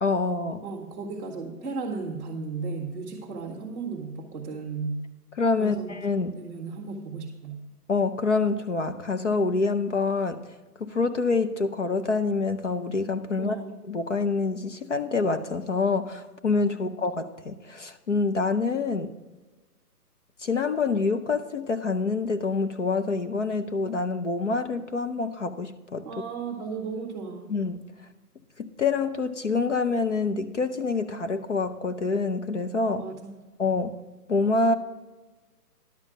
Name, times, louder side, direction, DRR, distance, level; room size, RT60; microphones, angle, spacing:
voice 1, 0.0-0.6 5.4-6.3 7.9-10.4 10.8-13.5 13.9-19.1 20.4-26.1 27.5-27.8 28.6-33.0 33.6-34.0 34.3-34.7, left 4 dB, 50° left, 9 dB, 0.7 m, -26 dB
voice 2, 0.6-5.0 5.6-7.6 13.4-13.7 16.7-16.9 26.0-27.5 33.0-33.5, right 4 dB, 10° right, -2 dB, 1.0 m, -35 dB
11.5 x 7.3 x 5.0 m, 1.2 s
hypercardioid pair, 170°, 47 cm